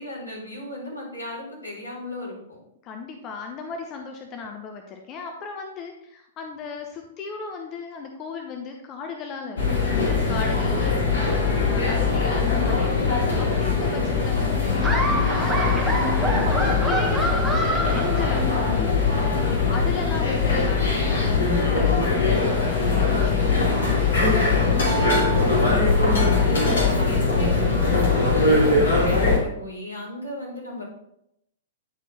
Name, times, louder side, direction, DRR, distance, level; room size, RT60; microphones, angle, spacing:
voice 1, 0.0-2.6 24.9-28.1 28.3-30.8, left 1 dB, 85° left, -4 dB, 3.5 m, -37 dB
voice 2, 2.8-9.6 10.3-11.0 11.3-13.1 13.4-14.8 15.0-18.9 19.7-24.0, left 4 dB, 30° left, 3 dB, 0.9 m, -35 dB
sound 1, 9.6-29.4, left 4 dB, 65° left, 2.9 m, -21 dB
Laughter, 14.8-18.9, right 1 dB, 5° right, 1.2 m, -27 dB
10.0 x 4.6 x 4.1 m, 0.79 s
figure-of-eight pair, 105°, 0 cm